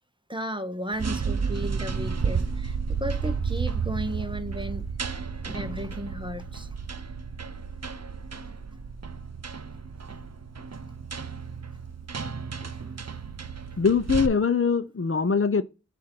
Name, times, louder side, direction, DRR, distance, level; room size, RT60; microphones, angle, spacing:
voice 1, 0.3-4.9 5.4-6.7, equal, 15° right, 0.8 m, -34 dB
sound 1, 0.9-14.3, right 5 dB, 60° right, 0.7 m, -32 dB
voice 2, 13.8-15.6, left 5 dB, 45° left, 0.6 m, -23 dB
7.5 x 2.6 x 5.8 m
wide cardioid pair, 45°, 29 cm